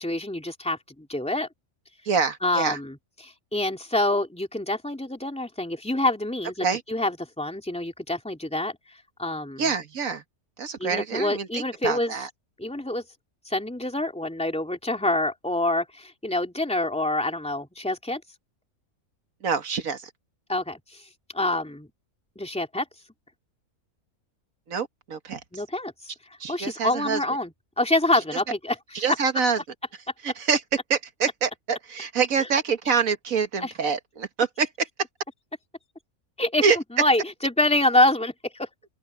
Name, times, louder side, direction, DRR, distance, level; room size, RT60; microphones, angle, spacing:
voice 1, 0.0-1.5 2.4-3.0 3.2-8.8 9.2-9.7 10.8-12.1 12.6-13.0 13.4-18.2 20.5-21.1 21.3-21.9 22.4-22.8 25.5-25.9 26.5-28.7 33.6-33.7 36.4-36.6 37.0-38.7, left 1 dB, 5° left, 3.2 m, -26 dB
voice 2, 2.1-2.8 6.6-6.8 9.6-10.2 10.6-12.3 19.4-20.1 24.7-25.6 26.4-27.2 28.9-29.6 30.2-34.9 36.6-36.8, right 5 dB, 70° right, 1.9 m, -26 dB
open air
omnidirectional pair, 1.5 m